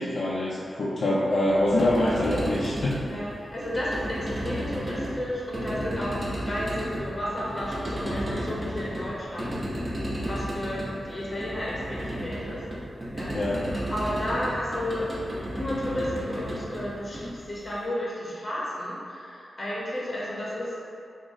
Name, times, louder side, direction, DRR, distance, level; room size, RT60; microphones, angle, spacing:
voice 1, 0.0-3.0 13.3-13.6, left 1 dB, 60° left, -7 dB, 0.4 m, -25 dB
sound 1, 1.6-17.7, equal, 30° right, 0.7 m, -33 dB
voice 2, 3.0-9.6 10.3-12.6 13.1-15.1 15.5-20.8, left 1 dB, 30° left, -6 dB, 0.7 m, -32 dB
6.0 x 2.0 x 2.7 m, 2.4 s
wide cardioid pair, 140°, 0 cm